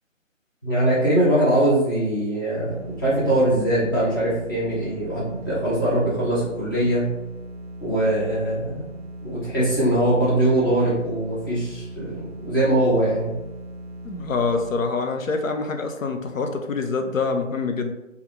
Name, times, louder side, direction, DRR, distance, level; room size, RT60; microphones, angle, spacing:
voice 1, 0.6-7.1 7.8-8.9 9.2-13.4, right 1 dB, 15° left, -10 dB, 0.7 m, -22 dB
sound 1, 2.7-14.8, right 1 dB, 50° right, 0.5 m, -38 dB
voice 2, 14.0-17.9, left 4 dB, 80° left, 5 dB, 0.5 m, -25 dB
3.3 x 2.3 x 3.0 m, 0.97 s
figure-of-eight pair, 150°, 39 cm